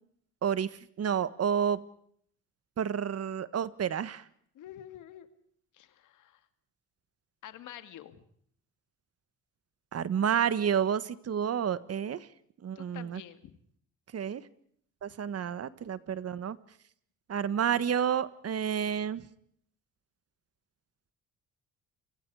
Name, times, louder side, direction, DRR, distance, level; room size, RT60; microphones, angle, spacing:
voice 1, 0.4-1.8 2.8-4.2 9.9-12.3 12.6-13.2 14.1-14.4 15.0-16.6 17.3-19.2, right 8 dB, 55° right, 15 dB, 1.5 m, -30 dB
voice 2, 4.5-5.3 5.7-6.5 7.4-8.2 12.0-12.2 12.8-13.6, left 11 dB, 85° left, 10 dB, 2.3 m, -48 dB
29.0 x 24.5 x 4.9 m, 0.63 s
cardioid pair, 90°, 30 cm